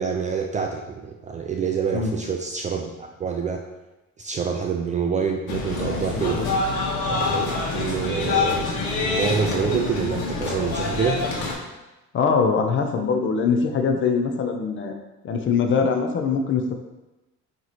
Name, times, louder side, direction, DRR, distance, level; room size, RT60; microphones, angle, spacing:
voice 1, 0.0-3.6 4.2-6.4 7.1-11.2, right 6 dB, 25° right, 2 dB, 0.4 m, -27 dB
sound 1, 5.5-11.5, left 3 dB, 70° left, 1.7 m, -26 dB
voice 2, 6.1-6.5 12.1-14.9 15.2-16.7, left 5 dB, 40° left, 4 dB, 0.7 m, -22 dB
9.2 x 3.1 x 4.1 m, 1.0 s
cardioid pair, 175°, 32 cm